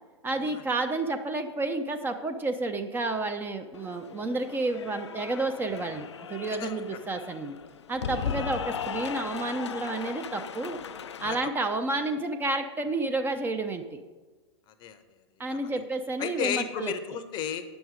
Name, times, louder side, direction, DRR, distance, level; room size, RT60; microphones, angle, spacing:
voice 1, 0.2-7.6 7.9-10.8 11.2-14.0 15.4-16.9, right 2 dB, 15° right, 6 dB, 0.5 m, -30 dB
Cheering / Applause, 3.7-11.4, left 7 dB, 75° left, 0.4 m, -37 dB
voice 2, 8.2-8.5 11.2-11.4 14.7-15.0 15.5-15.8 16.2-17.6, left 9 dB, 30° left, 11 dB, 0.7 m, -34 dB
9.2 x 6.1 x 5.0 m, 1.3 s
figure-of-eight pair, 100°, 15 cm